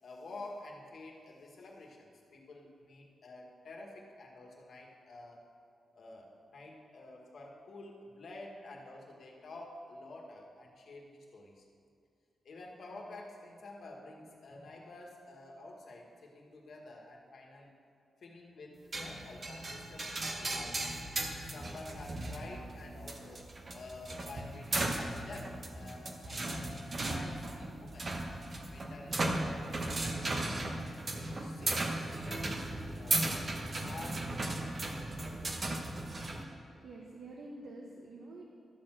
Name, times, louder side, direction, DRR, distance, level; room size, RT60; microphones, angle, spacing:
voice 1, 0.0-5.5 5.9-11.7 12.4-17.7 18.2-20.8 21.4-23.4 23.7-28.1 28.7-30.4 31.1-32.7 33.0-35.0 35.2-35.7, left 2 dB, 65° left, -1 dB, 1.7 m, -50 dB
sound 1, 18.9-36.4, right 2 dB, 35° right, 1.0 m, -36 dB
voice 2, 36.7-38.4, right 2 dB, 65° right, -1 dB, 0.9 m, -48 dB
13.0 x 4.4 x 7.5 m, 2.4 s
wide cardioid pair, 115°, 0 cm